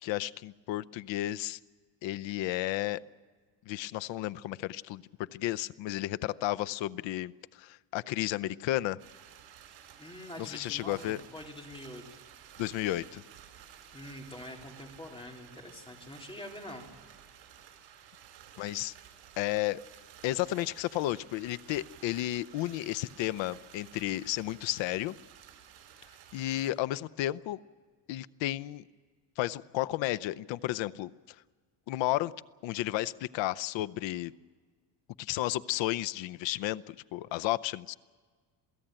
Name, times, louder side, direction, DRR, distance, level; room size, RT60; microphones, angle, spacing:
voice 1, 0.0-1.6 2.0-3.0 3.7-5.0 5.3-9.0 10.4-11.2 12.6-13.2 18.6-18.9 19.4-19.8 20.2-25.1 26.3-27.6 28.1-28.8 29.4-31.1 31.9-32.3 32.6-34.3 35.2-37.9, left 15 dB, 75° left, 15 dB, 0.8 m, -32 dB
sound 1, 9.0-26.7, right 10 dB, 75° right, 5.4 m, -54 dB
voice 2, 10.0-12.0 13.9-16.9, left 1 dB, 10° left, 1 dB, 3.4 m, -45 dB
27.5 x 17.0 x 8.9 m, 1.6 s
cardioid pair, 155°, 45 cm